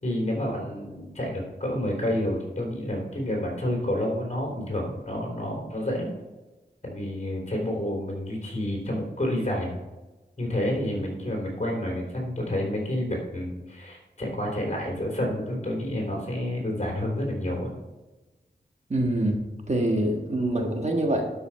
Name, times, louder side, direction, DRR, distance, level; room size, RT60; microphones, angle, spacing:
voice 1, 0.0-6.1 6.8-9.8 10.4-17.7, left 1 dB, 40° left, 0 dB, 3.5 m, -29 dB
voice 2, 18.9-21.2, right 1 dB, 40° right, 2 dB, 1.4 m, -25 dB
12.0 x 5.6 x 4.8 m, 1.1 s
wide cardioid pair, 90°, 18 cm